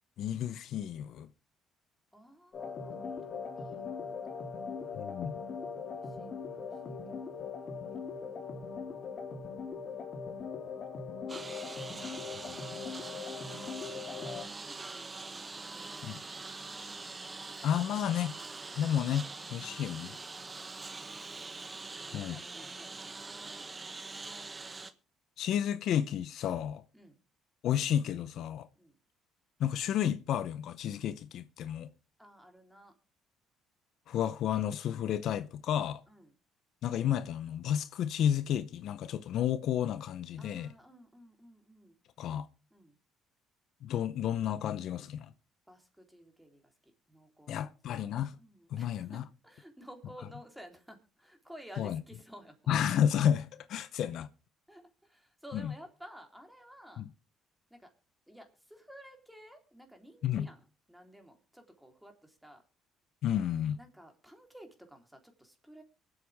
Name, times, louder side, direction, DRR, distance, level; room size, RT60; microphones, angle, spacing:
voice 1, 0.2-1.3 5.0-5.4 12.5-12.6 16.0-16.2 17.6-18.3 18.7-20.2 22.1-22.4 25.4-26.8 27.6-28.7 29.6-31.9 34.1-36.0 36.8-40.7 42.2-42.5 43.8-45.3 47.5-48.3 48.7-49.2 51.8-52.0 52.7-54.3 55.5-55.7 57.0-57.1 60.2-60.5 63.2-63.8, left 10 dB, 70° left, 0.7 m, -31 dB
voice 2, 2.1-4.2 5.8-7.4 7.8-8.4 10.4-11.3 13.5-16.0 19.6-19.7 20.9-21.6 22.3-23.7 26.9-27.2 28.8-29.0 32.2-32.9 36.1-36.4 40.4-42.0 42.7-43.0 45.7-47.7 48.4-52.7 54.7-57.1 57.7-57.9 58.3-62.6 63.8-65.8, equal, 5° right, 3.6 m, -55 dB
sound 1, 2.5-14.4, left 5 dB, 45° left, 2.9 m, -40 dB
Engine, 11.3-24.9, right 3 dB, 25° right, 1.3 m, -44 dB
24.0 x 8.0 x 3.5 m
cardioid pair, 85°, 0 cm